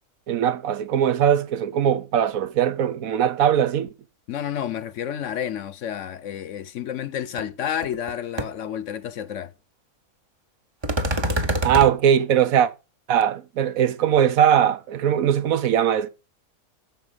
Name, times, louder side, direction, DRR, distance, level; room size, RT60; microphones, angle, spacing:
voice 1, 0.3-3.9 11.6-12.7 13.1-16.1, right 9 dB, 70° right, 1.2 m, -20 dB
voice 2, 4.3-9.5, left 9 dB, 65° left, 0.9 m, -30 dB
sound 1, 7.4-7.5 7.8-8.1 8.4-8.5 10.8-11.9, right 1 dB, 20° right, 0.8 m, -24 dB
10.0 x 6.9 x 5.0 m
omnidirectional pair, 1.5 m